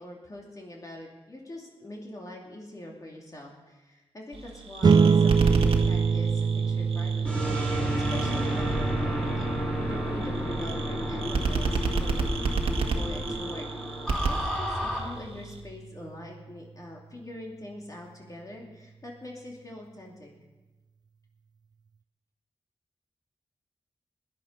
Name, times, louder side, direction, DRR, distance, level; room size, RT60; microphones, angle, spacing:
voice 1, 0.0-7.7 8.1-12.6 12.9-13.7 14.2-20.3, left 1 dB, 35° left, -2 dB, 2.7 m, -43 dB
sound 1, 4.3-15.6, right 3 dB, 70° right, 1.7 m, -32 dB
sound 2, 4.8-15.6, right 5 dB, 40° right, 0.4 m, -27 dB
sound 3, 7.2-15.0, equal, 10° left, 5.6 m, -31 dB
17.0 x 11.0 x 5.6 m, 1.1 s
wide cardioid pair, 125°, 10 cm